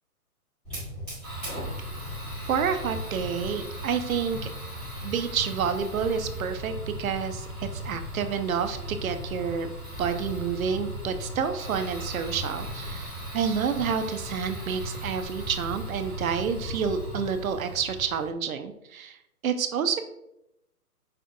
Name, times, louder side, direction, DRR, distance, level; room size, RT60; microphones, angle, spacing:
Fire, 0.6-18.3, equal, ahead, 0.5 m, -37 dB
voice 1, 2.5-4.4 5.0-6.7 7.0-9.7 10.0-20.0, right 7 dB, 65° right, 8 dB, 0.5 m, -29 dB
5.5 x 2.5 x 2.5 m, 0.83 s
figure-of-eight pair, 130°, 46 cm